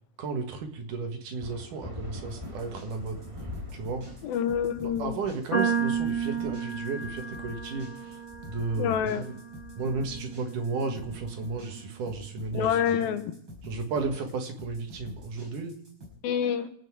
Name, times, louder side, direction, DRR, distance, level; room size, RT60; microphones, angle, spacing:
voice 1, 0.2-3.2 3.7-4.1 4.8-8.2 8.5-9.4 9.8-13.1 13.6-15.8, right 4 dB, 65° right, 4 dB, 3.0 m, -33 dB
sound 1, 1.4-11.4, left 1 dB, 10° right, 1.7 m, -45 dB
sound 2, 2.3-16.1, left 2 dB, 35° right, 6.0 m, -47 dB
voice 2, 4.2-5.2 8.8-9.2 12.5-13.2 16.2-16.7, left 8 dB, 85° left, 9 dB, 2.9 m, -27 dB
sound 3, 5.5-11.8, right 6 dB, 35° left, 4.5 m, -33 dB
26.5 x 9.2 x 4.7 m, 0.66 s
omnidirectional pair, 4.1 m